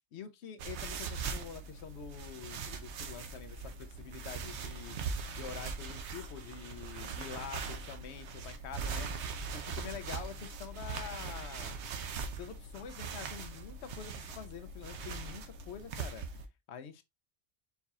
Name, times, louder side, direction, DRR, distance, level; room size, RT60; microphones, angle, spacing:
voice 1, 0.1-5.0 5.3-9.1 9.5-11.8 12.3-16.2 16.7-17.0, left 8 dB, 75° left, 0.9 m, -46 dB
sound 1, 0.6-16.5, right 5 dB, 75° right, 1.0 m, -41 dB
4.6 x 4.2 x 2.2 m
omnidirectional pair, 1.2 m